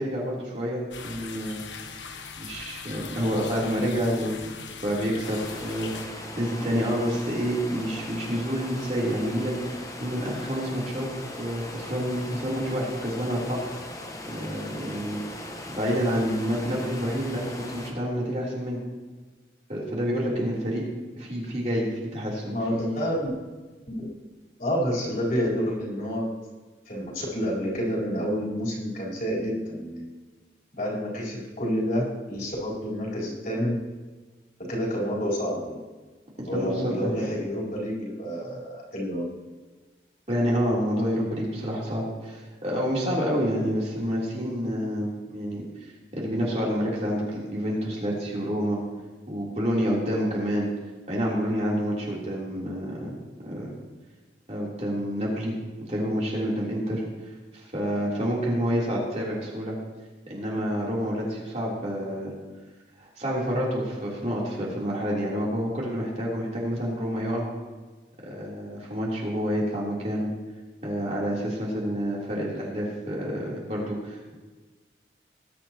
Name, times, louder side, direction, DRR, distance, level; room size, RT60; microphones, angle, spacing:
voice 1, 0.0-1.6 2.4-4.4 4.8-11.1 11.4-13.6 14.3-15.2 15.7-18.8 19.7-20.8 21.2-23.0 36.4-37.2 40.3-48.8 49.3-50.7 51.1-53.1 53.4-53.7 54.5-55.5 55.9-57.0 57.5-59.8 60.3-62.3 63.0-67.5 68.2-70.3 70.8-74.4, equal, 40° right, -5 dB, 3.5 m, -28 dB
sound 1, 0.9-6.1, left 5 dB, 90° left, 1.2 m, -40 dB
sound 2, 5.2-17.9, left 1 dB, 20° left, 1.2 m, -39 dB
voice 2, 22.5-23.3 23.9-24.1 24.6-26.3 26.9-30.1 30.8-33.7 34.6-35.8 36.5-39.3, equal, 45° left, -5 dB, 4.2 m, -29 dB
20.0 x 11.0 x 3.0 m, 1.3 s
head